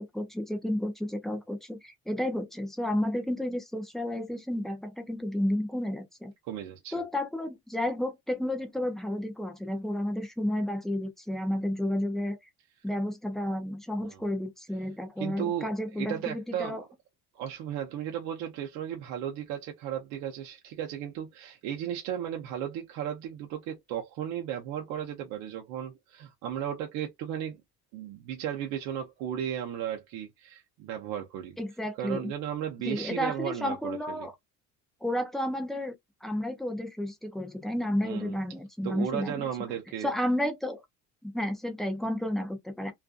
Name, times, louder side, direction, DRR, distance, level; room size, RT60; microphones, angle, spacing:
voice 1, 0.0-6.3 6.9-12.4 12.8-16.8 31.6-32.3 32.9-34.3 35.0-35.9 36.2-39.5 40.0-40.8 41.2-42.9, left 1 dB, ahead, 0.3 m, -31 dB
voice 2, 6.4-7.0 14.0-14.2 15.2-16.8 17.3-27.6 27.9-31.6 32.0-34.3 38.0-38.4 38.8-40.1, right 10 dB, 65° right, 0.6 m, -35 dB
2.5 x 2.4 x 2.3 m
cardioid pair, 165°, 31 cm